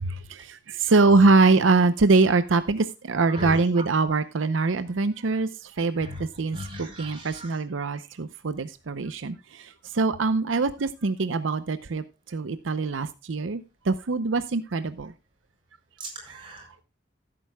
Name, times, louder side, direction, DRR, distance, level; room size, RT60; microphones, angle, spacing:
voice 1, 0.0-15.1, right 3 dB, 90° right, 0.6 m, -23 dB
voice 2, 3.1-3.8 6.0-6.2 6.5-7.5 16.0-16.7, equal, 25° right, 4.8 m, -38 dB
15.5 x 8.7 x 2.2 m
head